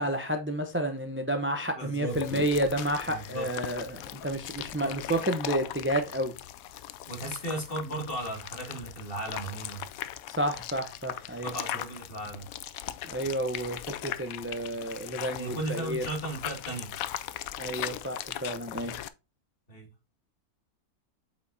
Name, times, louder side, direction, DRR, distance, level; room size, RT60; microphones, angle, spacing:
voice 1, 0.0-6.3 10.3-11.5 13.1-16.0 17.6-18.9, right 1 dB, 15° right, 0.4 m, -30 dB
voice 2, 1.7-2.2 3.1-3.5 7.1-9.9 11.4-12.5 15.3-16.9 19.7-19.9, right 1 dB, 35° left, 2.5 m, -36 dB
sound 1, 2.1-19.1, left 12 dB, 70° left, 0.9 m, -39 dB
8.2 x 5.1 x 2.7 m
omnidirectional pair, 1.6 m